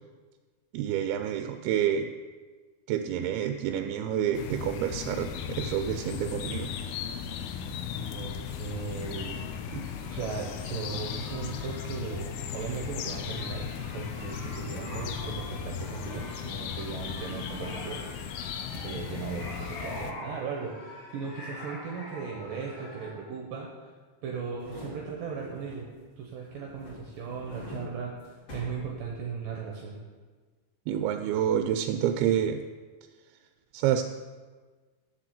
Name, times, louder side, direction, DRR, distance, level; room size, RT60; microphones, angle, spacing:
voice 1, 0.7-2.1 2.9-6.7 9.7-9.9 30.9-32.6 33.7-34.0, right 10 dB, 90° right, 7 dB, 2.5 m, -28 dB
sound 1, 4.3-20.1, left 7 dB, 85° left, 2.5 m, -36 dB
voice 2, 8.0-9.4 10.1-13.7 13.9-18.1 18.7-23.9 24.2-25.9 26.2-28.1 28.5-30.0, right 5 dB, 70° right, -1 dB, 2.5 m, -37 dB
sound 2, 9.0-23.1, left 1 dB, 60° left, 3.9 m, -46 dB
sound 3, 24.4-26.1 26.4-29.5 29.9-30.0, left 2 dB, 40° left, 3.4 m, -46 dB
7.5 x 7.0 x 7.6 m, 1.4 s
omnidirectional pair, 4.4 m